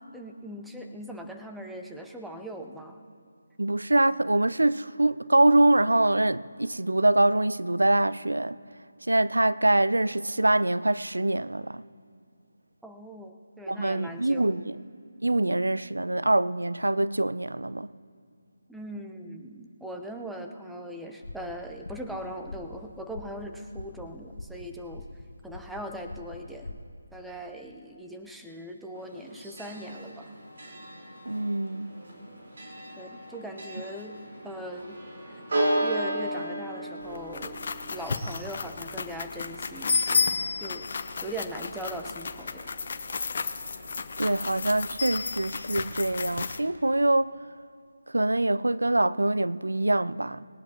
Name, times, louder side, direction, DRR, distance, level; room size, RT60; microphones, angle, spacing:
voice 1, 0.1-3.0 12.8-14.7 18.7-25.0 25.4-26.8 27.1-30.3 33.0-34.2 34.4-35.0 35.3-35.4 35.8-37.6 37.9-42.7, right 1 dB, ahead, 0.8 m, -40 dB
voice 2, 3.6-8.6 9.1-11.8 13.7-14.8 15.2-17.9 31.3-31.9 44.2-47.4 48.1-50.4, right 2 dB, 85° right, 0.5 m, -24 dB
sound 1, 21.2-26.9, left 2 dB, 75° left, 1.1 m, -44 dB
Church bell, 29.0-44.0, right 1 dB, 60° right, 4.3 m, -36 dB
sound 2, 37.0-46.6, left 4 dB, 50° left, 0.9 m, -32 dB
19.5 x 18.5 x 3.0 m
figure-of-eight pair, 155°, 0 cm